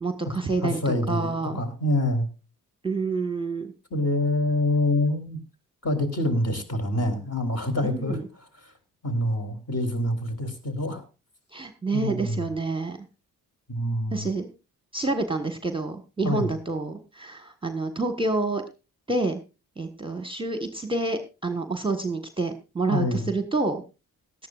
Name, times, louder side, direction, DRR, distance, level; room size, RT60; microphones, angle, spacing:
voice 1, 0.0-1.6 2.8-3.7 7.8-8.2 11.5-13.0 14.1-14.5 14.9-18.6 19.1-19.4 19.8-23.8, right 3 dB, 10° right, 7 dB, 1.5 m, -28 dB
voice 2, 0.6-2.3 3.9-5.4 5.8-8.2 9.0-11.0 11.9-12.4 13.7-14.3 16.2-16.5 22.9-23.3, left 1 dB, 30° left, 6 dB, 3.5 m, -26 dB
18.0 x 12.5 x 2.5 m, 0.31 s
hypercardioid pair, 40°, 46 cm